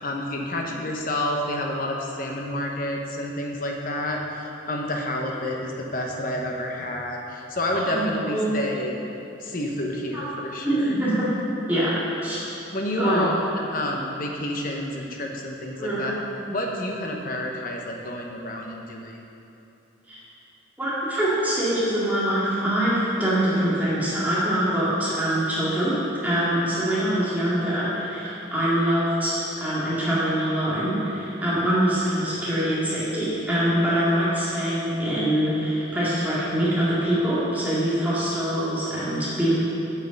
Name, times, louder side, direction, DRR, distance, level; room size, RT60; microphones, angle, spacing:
voice 1, 0.0-9.0 9.4-10.9 12.7-16.1 16.5-19.2, left 1 dB, 45° left, 0 dB, 1.0 m, -29 dB
voice 2, 10.6-11.2 11.7-12.0 12.2-12.4 13.0-13.3 15.8-16.0 20.1-20.2 20.8-39.6, right 1 dB, 10° right, -9 dB, 2.2 m, -24 dB
8.3 x 6.8 x 5.4 m, 3.0 s
head